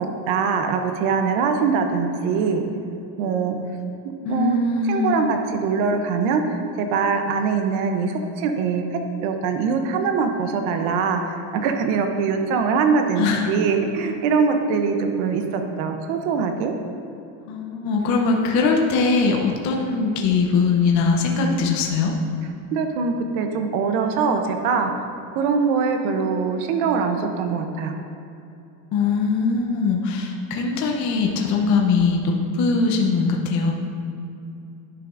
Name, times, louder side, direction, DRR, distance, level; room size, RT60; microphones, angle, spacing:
voice 1, 0.0-2.7 3.2-3.6 4.0-4.6 4.9-16.7 22.7-24.9 25.4-27.9, right 5 dB, 85° right, 5 dB, 0.8 m, -23 dB
voice 2, 4.2-5.2 13.2-13.5 17.4-22.1 28.9-33.7, left 4 dB, 45° left, 1 dB, 0.7 m, -21 dB
10.5 x 5.9 x 2.5 m, 2.8 s
cardioid pair, 170°, 40 cm